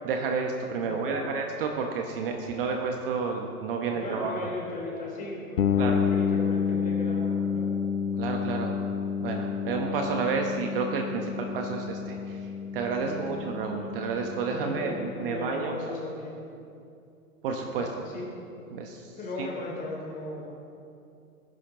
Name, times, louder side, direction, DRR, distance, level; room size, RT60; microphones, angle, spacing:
voice 1, 0.0-4.6 4.9-5.0 5.8-6.0 8.2-8.8 9.2-16.0 17.4-17.9 18.7-19.5, right 5 dB, 40° right, 3 dB, 1.2 m, -31 dB
voice 2, 0.9-1.3 3.9-7.7 13.0-13.4 14.5-16.4 17.8-18.3 19.1-20.5, left 2 dB, 20° left, -2 dB, 3.6 m, -37 dB
sound 1, 5.6-15.3, left 6 dB, 60° left, 0.8 m, -30 dB
20.0 x 10.5 x 3.9 m, 2.5 s
figure-of-eight pair, 115°, 44 cm